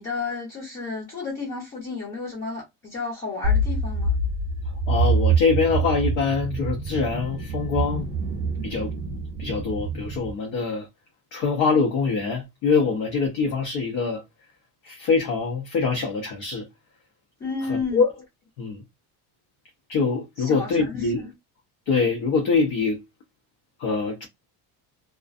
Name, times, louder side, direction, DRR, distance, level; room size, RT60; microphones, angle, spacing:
voice 1, 0.0-4.1 17.4-18.0 20.4-21.3, left 4 dB, 25° left, 0.8 m, -32 dB
sound 1, 3.4-10.3, right 2 dB, 25° right, 0.6 m, -25 dB
voice 2, 4.9-8.1 8.6-8.9 9.4-10.9 11.3-14.2 14.8-16.7 17.7-18.1 18.6-18.8 19.9-21.3 21.9-23.0 23.8-24.3, left 4 dB, 60° left, 0.8 m, -24 dB
2.4 x 2.3 x 2.4 m
cardioid pair, 165°, 45 cm